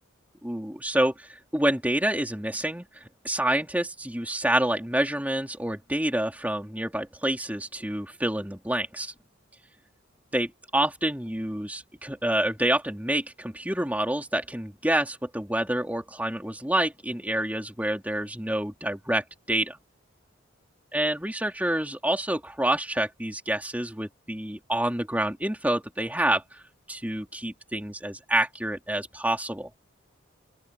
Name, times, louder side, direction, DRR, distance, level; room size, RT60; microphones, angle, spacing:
voice 1, 0.4-9.1 10.3-19.8 20.9-26.6 26.9-29.7, right 1 dB, 10° right, 3.1 m, -28 dB
open air
head